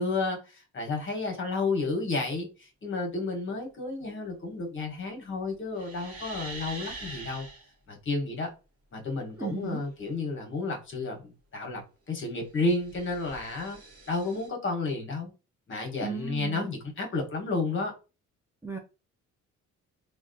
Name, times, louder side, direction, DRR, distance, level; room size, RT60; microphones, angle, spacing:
voice 1, 0.0-7.5 7.9-8.5 8.9-11.8 12.1-13.8 14.1-15.3 15.7-17.9, left 3 dB, 40° left, 1.2 m, -31 dB
sound 1, 5.7-7.7 12.5-14.5, right 2 dB, 50° right, 1.0 m, -44 dB
voice 2, 9.4-9.8 16.0-16.7 18.6-18.8, right 5 dB, 10° right, 0.4 m, -35 dB
3.8 x 2.2 x 2.6 m
cardioid pair, 90°, 30 cm